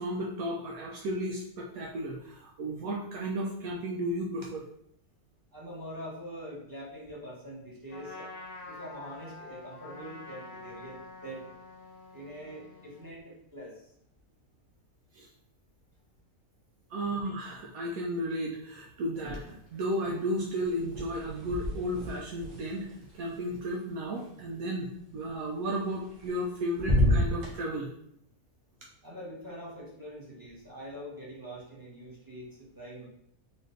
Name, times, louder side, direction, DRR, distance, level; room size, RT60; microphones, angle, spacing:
voice 1, 0.0-4.6 15.1-15.3 16.9-22.9 23.1-27.9, equal, 75° right, -1 dB, 1.0 m, -34 dB
voice 2, 5.5-11.5 12.1-13.9 29.0-33.1, equal, 15° right, -6 dB, 1.0 m, -44 dB
Trumpet, 7.9-13.1, left 2 dB, 80° left, 1.4 m, -47 dB
sound 1, 19.1-19.9 20.1-24.2 25.9-26.5 26.7-27.5, left 1 dB, 55° right, 1.6 m, -31 dB
4.0 x 2.6 x 3.8 m, 0.72 s
omnidirectional pair, 1.6 m